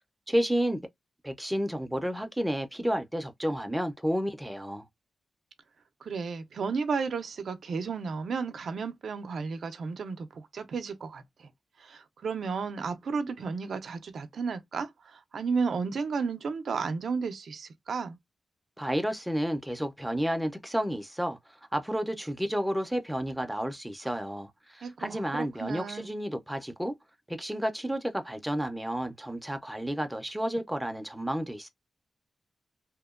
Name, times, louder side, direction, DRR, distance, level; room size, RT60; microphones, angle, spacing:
voice 1, 0.3-0.8 1.2-4.8 18.8-21.4 21.7-26.9 27.3-31.7, equal, 5° right, 0.4 m, -31 dB
voice 2, 6.0-11.2 11.8-18.2 24.8-26.1, right 5 dB, 70° right, 0.4 m, -33 dB
2.8 x 2.1 x 2.3 m
wide cardioid pair, 160°, 0 cm